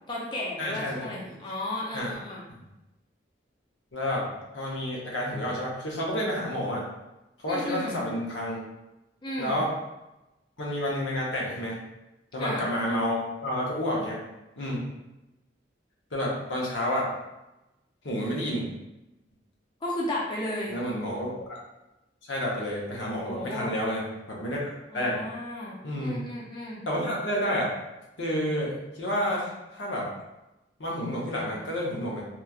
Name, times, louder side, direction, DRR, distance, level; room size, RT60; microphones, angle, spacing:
voice 1, 0.1-2.4 7.5-8.0 9.2-9.6 12.4-12.6 19.8-20.8 23.2-23.7 24.9-26.8, left 1 dB, 25° left, -4 dB, 0.4 m, -34 dB
voice 2, 0.6-1.3 1.9-2.1 2.5-2.6 3.9-4.3 4.5-6.9 7.4-8.7 9.4-9.7 10.6-11.8 12.3-14.2 14.6-14.8 16.1-17.1 18.0-18.7 20.7-21.6 22.3-24.6 24.9-25.2 25.8-26.2 26.9-27.7 28.2-30.1 30.8-32.2, equal, 85° left, -3 dB, 0.8 m, -30 dB
3.0 x 2.3 x 2.3 m, 0.97 s
head